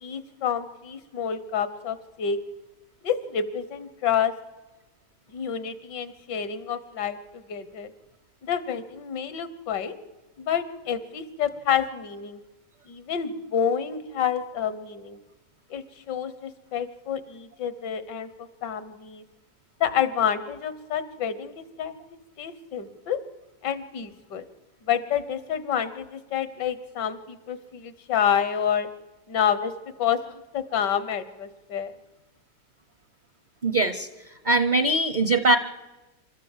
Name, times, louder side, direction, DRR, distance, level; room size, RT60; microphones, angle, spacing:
voice 1, 0.0-2.4 3.0-4.3 5.3-7.9 8.4-10.0 10.4-12.4 12.9-15.2 15.7-19.2 19.8-21.9 22.4-23.2 23.6-24.5 24.8-28.9 29.3-31.9, left 8 dB, 75° left, 14 dB, 1.8 m, -28 dB
voice 2, 33.6-34.1 34.4-35.6, right 2 dB, 45° right, 11 dB, 0.6 m, -21 dB
26.5 x 13.5 x 7.3 m, 1.1 s
omnidirectional pair, 1.9 m